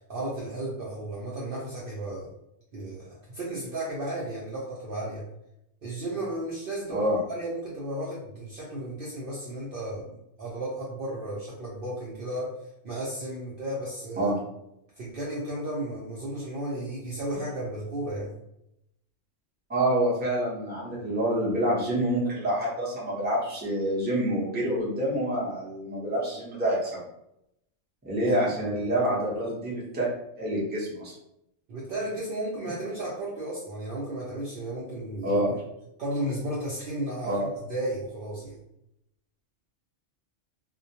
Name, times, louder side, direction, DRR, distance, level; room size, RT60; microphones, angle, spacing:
voice 1, 0.1-2.3 2.7-5.3 5.8-10.1 10.4-12.5 12.8-14.3 15.0-18.3 28.4-28.8 31.7-35.6 36.0-38.6, right 1 dB, 60° right, -6 dB, 0.6 m, -34 dB
voice 2, 19.7-27.0 28.0-30.1 30.4-31.1 35.2-35.5 37.2-37.5, right 1 dB, 10° right, -7 dB, 0.6 m, -27 dB
2.2 x 2.1 x 2.7 m, 0.81 s
omnidirectional pair, 1.3 m